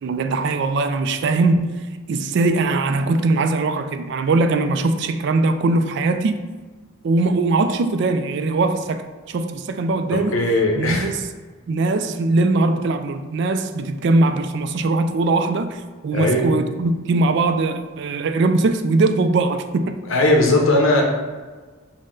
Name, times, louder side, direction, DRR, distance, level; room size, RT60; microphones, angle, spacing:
voice 1, 0.0-6.4 7.0-10.4 10.8-11.2 11.7-19.9, right 3 dB, 55° right, 0.3 m, -21 dB
voice 2, 10.3-11.1 16.1-16.5 20.1-21.0, left 1 dB, 70° left, 0.8 m, -18 dB
6.3 x 2.1 x 3.7 m
head